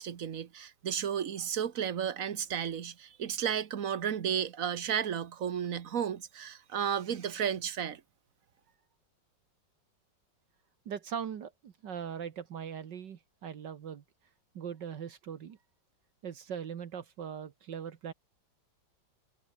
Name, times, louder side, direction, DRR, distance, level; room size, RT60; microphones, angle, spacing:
voice 1, 0.0-8.0, right 8 dB, 50° right, 1.4 m, -33 dB
voice 2, 10.9-14.0 14.6-15.6 16.2-18.1, right 8 dB, 65° right, 1.9 m, -40 dB
omnidirectional pair, 2.1 m